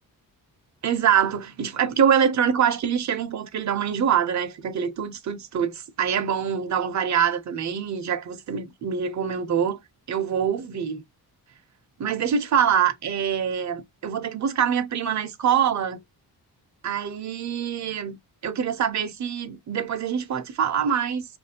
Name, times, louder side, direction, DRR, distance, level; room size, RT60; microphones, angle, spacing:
voice 1, 0.8-9.8 10.1-11.0 12.0-16.0 16.8-18.2 18.4-21.3, right 8 dB, 45° right, 0.7 m, -24 dB
4.4 x 2.6 x 2.8 m
wide cardioid pair, 140°, 38 cm